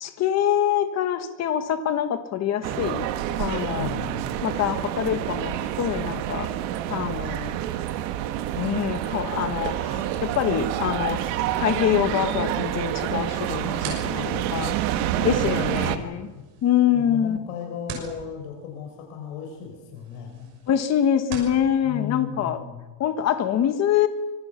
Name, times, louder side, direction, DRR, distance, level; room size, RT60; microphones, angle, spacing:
voice 1, 0.0-3.1 3.4-3.9 4.4-6.5 6.9-7.6 8.6-11.2 11.6-14.2 14.5-14.7 15.2-16.3 16.6-17.4 20.7-22.6 23.0-24.1, left 10 dB, 35° left, 9 dB, 1.4 m, -25 dB
sound 1, 2.6-16.0, right 12 dB, 80° right, 1.8 m, -28 dB
voice 2, 3.7-4.3 12.3-12.4 14.2-16.2 16.9-20.5 21.8-22.8, left 8 dB, 80° left, 2 dB, 5.0 m, -36 dB
sound 2, 13.3-21.6, right 6 dB, 60° right, 6.3 m, -43 dB
25.0 x 22.5 x 5.8 m, 1.2 s
cardioid pair, 170°, 47 cm